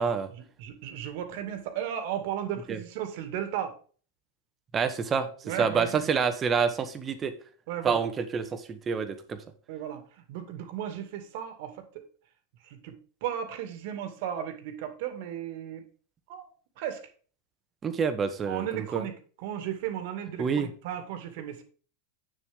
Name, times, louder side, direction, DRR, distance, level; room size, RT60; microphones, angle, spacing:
voice 1, 0.4-3.8 5.4-6.1 7.7-8.0 9.7-10.0 10.3-12.0 12.6-15.9 16.3-16.5 16.8-17.1 18.5-21.6, right 10 dB, 60° right, 8 dB, 2.2 m, -35 dB
voice 2, 4.7-5.3 5.6-7.3 7.8-9.4 17.8-19.0 20.4-20.7, right 6 dB, 25° right, 9 dB, 1.6 m, -27 dB
9.2 x 7.2 x 3.6 m, 0.40 s
hypercardioid pair, 105°, 0 cm